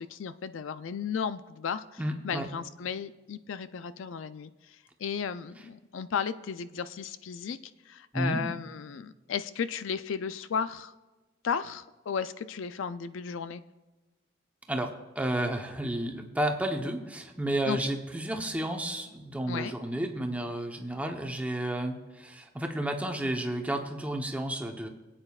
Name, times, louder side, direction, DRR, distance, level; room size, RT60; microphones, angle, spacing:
voice 1, 0.0-1.8 2.2-7.6 7.9-10.9 11.4-13.6 17.7-17.9 19.5-19.7, left 6 dB, 65° left, 13 dB, 0.4 m, -34 dB
voice 2, 2.0-2.5 8.1-8.4 14.7-24.9, right 1 dB, 5° right, 3 dB, 0.9 m, -32 dB
25.5 x 8.8 x 2.4 m, 1.2 s
head